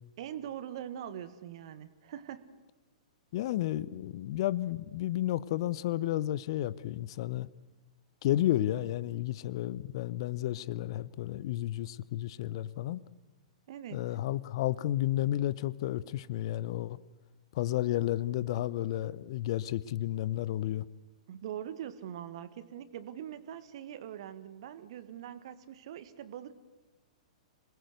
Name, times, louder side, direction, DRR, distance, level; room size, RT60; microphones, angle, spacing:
voice 1, 0.2-2.5 13.7-14.1 21.3-26.5, right 10 dB, 50° right, 1.7 m, -42 dB
voice 2, 3.3-7.5 8.2-13.0 13.9-17.0 17.5-20.9, left 14 dB, 45° left, 0.8 m, -32 dB
26.5 x 20.0 x 8.1 m
figure-of-eight pair, 105°, 4 cm